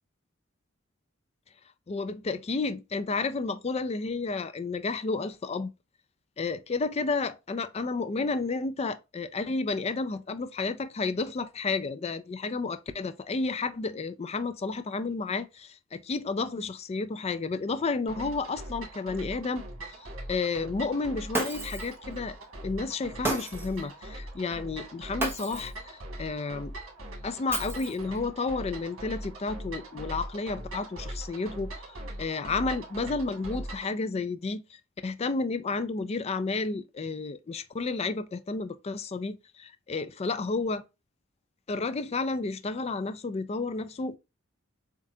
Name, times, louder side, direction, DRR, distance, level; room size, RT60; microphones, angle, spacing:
voice 1, 1.9-5.7 6.4-19.6 20.0-22.4 22.6-25.7 26.2-26.7 27.2-31.9 32.2-40.8 41.7-44.2, left 3 dB, 30° left, 0.4 m, -31 dB
sound 1, 18.1-33.9, right 1 dB, 75° right, 2.0 m, -41 dB
Shatter, 21.3-21.9 23.2-23.8 25.2-25.8 27.5-28.2, right 2 dB, 10° right, 0.9 m, -32 dB
7.2 x 2.4 x 2.7 m
head